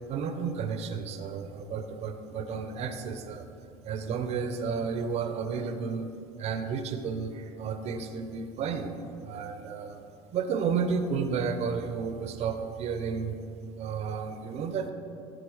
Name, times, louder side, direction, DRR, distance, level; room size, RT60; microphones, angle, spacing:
voice 1, 0.1-3.5 3.8-6.1 6.4-8.9 9.2-13.4 13.8-14.9, right 5 dB, 50° right, 8 dB, 0.7 m, -32 dB
11.5 x 4.1 x 4.8 m, 2.6 s
supercardioid pair, 105°, 14 cm